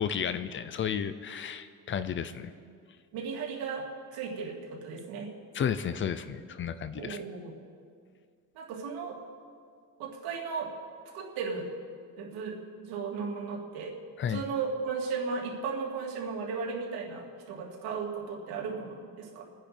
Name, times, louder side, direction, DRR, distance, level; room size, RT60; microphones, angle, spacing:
voice 1, 0.0-2.5 5.5-7.2 14.2-14.4, left 8 dB, 35° left, 13 dB, 0.7 m, -32 dB
voice 2, 3.1-5.3 6.9-7.5 8.5-9.2 10.0-10.7 11.1-11.7 12.2-13.9 14.3-19.5, right 5 dB, 90° right, -1 dB, 3.1 m, -35 dB
29.0 x 10.0 x 4.5 m, 2.1 s
cardioid pair, 150°, 35 cm